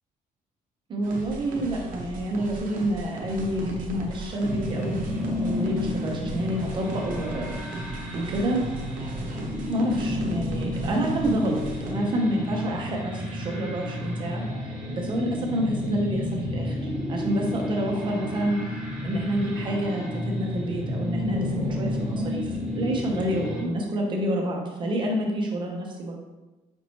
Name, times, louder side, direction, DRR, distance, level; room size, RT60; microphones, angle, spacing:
voice 1, 0.9-5.1 5.4-7.6 8.1-8.6 9.7-16.8 17.1-18.6 19.0-26.1, right 1 dB, 35° right, 0 dB, 0.7 m, -28 dB
sound 1, 1.0-11.9, right 2 dB, 75° right, 0.7 m, -37 dB
sound 2, 4.4-23.6, left 1 dB, 10° right, 1.1 m, -31 dB
5.2 x 2.9 x 2.8 m, 1.1 s
cardioid pair, 180°, 14 cm